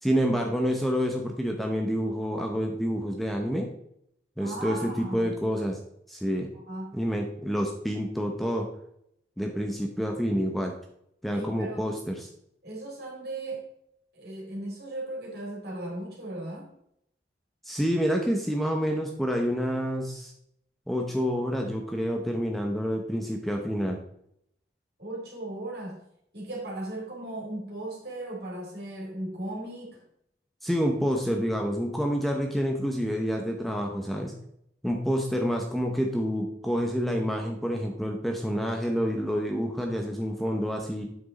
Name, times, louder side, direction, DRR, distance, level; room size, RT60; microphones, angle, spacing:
voice 1, 0.0-3.7 4.4-5.8 6.1-6.5 6.9-8.7 9.4-10.7 11.2-12.3 17.6-20.3 20.9-24.0 30.6-34.3 34.8-41.0, equal, ahead, 2 dB, 0.8 m, -28 dB
voice 2, 4.4-5.3 6.5-7.0 11.3-11.8 12.6-13.6 14.1-16.7 25.0-26.0 26.3-30.0, right 1 dB, 60° right, -2 dB, 3.5 m, -37 dB
8.0 x 6.2 x 4.1 m, 0.73 s
head